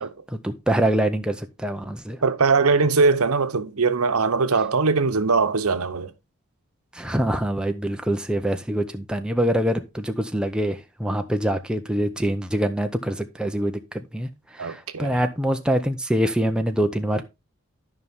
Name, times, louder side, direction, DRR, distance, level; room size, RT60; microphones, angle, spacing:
voice 1, 0.3-2.2 6.9-17.2, right 1 dB, 5° right, 0.6 m, -25 dB
voice 2, 2.2-6.1 14.6-15.2, right 4 dB, 80° right, 0.9 m, -21 dB
12.5 x 5.5 x 3.5 m
head